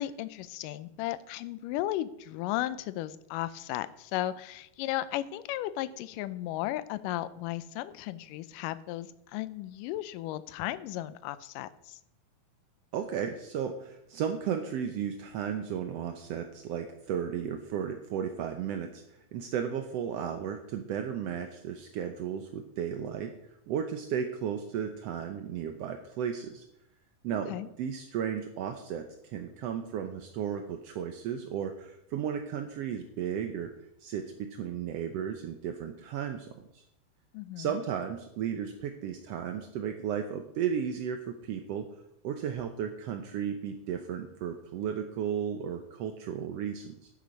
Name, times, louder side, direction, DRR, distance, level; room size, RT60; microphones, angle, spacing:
voice 1, 0.0-12.0 27.5-27.7 37.3-37.8, left 14 dB, 85° left, 15 dB, 2.2 m, -35 dB
voice 2, 12.9-23.3 23.7-26.6 27.2-33.7 34.0-36.8 37.6-41.9 42.2-47.1, right 8 dB, 75° right, 6 dB, 1.5 m, -34 dB
10.5 x 10.0 x 5.2 m, 0.77 s
omnidirectional pair, 3.8 m